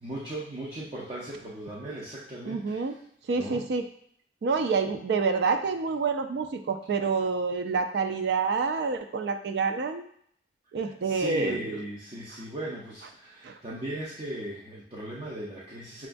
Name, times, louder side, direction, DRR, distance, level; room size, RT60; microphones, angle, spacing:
voice 1, 0.0-2.9 3.3-3.7 11.0-16.1, right 1 dB, 30° right, -6 dB, 0.6 m, -37 dB
voice 2, 2.5-3.0 3.3-3.8 4.4-10.1 10.7-11.8 13.4-13.6, right 4 dB, 70° right, 7 dB, 0.4 m, -28 dB
6.0 x 2.3 x 2.5 m, 0.65 s
head